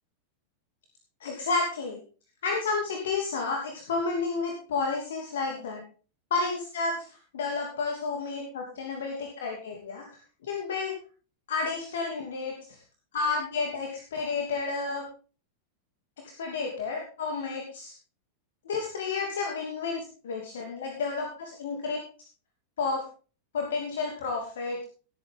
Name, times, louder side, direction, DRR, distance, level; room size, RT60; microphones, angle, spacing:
voice 1, 1.2-2.0 2.4-5.8 6.3-7.1 7.3-10.1 10.4-11.0 11.5-12.8 13.1-15.0 16.4-17.9 18.6-22.0 22.8-23.0 23.5-24.9, left 4 dB, 60° left, 2 dB, 2.8 m, -31 dB
18.0 x 9.1 x 3.7 m, 0.37 s
figure-of-eight pair, 90°, 0 cm